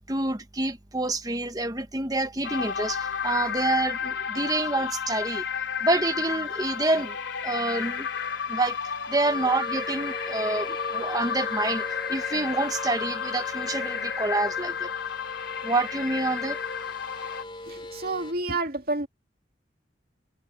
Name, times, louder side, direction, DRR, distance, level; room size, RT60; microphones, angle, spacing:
voice 1, 0.1-5.4 5.8-7.2 7.4-8.1 8.5-8.8 9.1-14.9 15.6-16.6, right 2 dB, 20° right, 1.1 m, -27 dB
sound 1, 2.4-17.4, left 7 dB, 85° left, 3.0 m, -32 dB
sound 2, 9.2-18.3, left 1 dB, 25° left, 3.1 m, -40 dB
voice 2, 17.7-19.1, right 2 dB, 55° right, 2.3 m, -29 dB
head